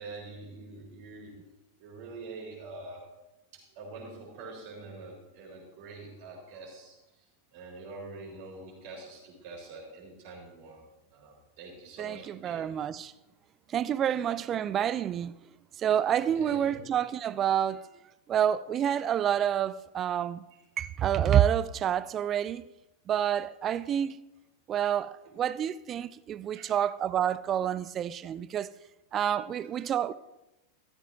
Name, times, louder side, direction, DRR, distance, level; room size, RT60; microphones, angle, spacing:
voice 1, 0.0-1.3 1.8-3.1 3.5-7.0 7.5-10.8 11.1-12.8 14.0-14.2 16.2-16.9 20.5-20.6 26.5-26.7 29.7-29.9, right 3 dB, 45° right, 4.5 m, -45 dB
voice 2, 12.0-13.1 13.7-15.3 15.8-17.8 18.3-20.4 20.8-22.6 23.1-24.2 24.7-28.7 29.1-30.1, right 10 dB, 30° right, 0.4 m, -28 dB
15.0 x 13.5 x 3.0 m
figure-of-eight pair, 90°, 0 cm